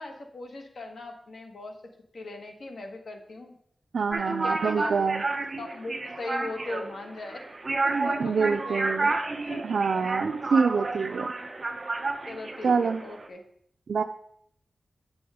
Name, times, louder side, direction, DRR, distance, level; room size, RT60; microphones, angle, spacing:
voice 1, 0.0-1.8 2.1-3.6 4.1-5.1 5.6-7.4 7.8-9.1 9.4-9.7 9.9-10.2 11.4-12.0 12.3-13.4, left 2 dB, 80° left, 4 dB, 1.4 m, -40 dB
voice 2, 3.9-5.2 7.9-9.1 9.6-11.3 12.6-13.0 13.9-14.0, right 5 dB, 85° right, 3 dB, 0.4 m, -26 dB
sound 1, 4.1-13.3, right 3 dB, 35° right, 0.7 m, -31 dB
8.6 x 6.3 x 4.9 m, 0.68 s
wide cardioid pair, 120°, 0 cm